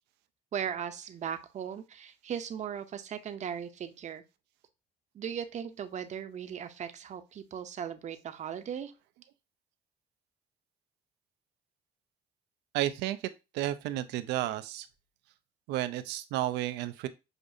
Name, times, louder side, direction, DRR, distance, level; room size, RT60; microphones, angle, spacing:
voice 1, 0.5-4.2 5.1-8.9, right 8 dB, 45° right, 0.6 m, -38 dB
voice 2, 12.7-13.2 13.5-14.9 15.7-17.1, right 13 dB, 90° right, 0.5 m, -32 dB
6.4 x 2.6 x 2.6 m
cardioid pair, 110°, 17 cm